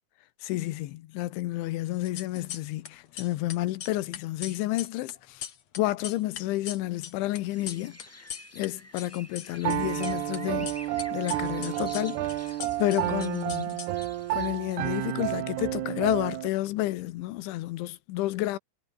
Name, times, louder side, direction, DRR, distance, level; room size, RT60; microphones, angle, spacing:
voice 1, 0.4-5.5 5.8-8.3 8.5-10.8 11.1-13.8 14.3-18.6, left 16 dB, 90° left, 3.5 m, -30 dB
sound 1, 1.9-2.9 3.1-8.7 8.9-10.4 10.7-14.3, left 9 dB, 50° left, 2.2 m, -40 dB
sound 2, 7.5-15.1, equal, 5° left, 5.0 m, -50 dB
Piano, 9.6-16.5, right 15 dB, 70° right, 3.0 m, -31 dB
omnidirectional pair, 5.3 m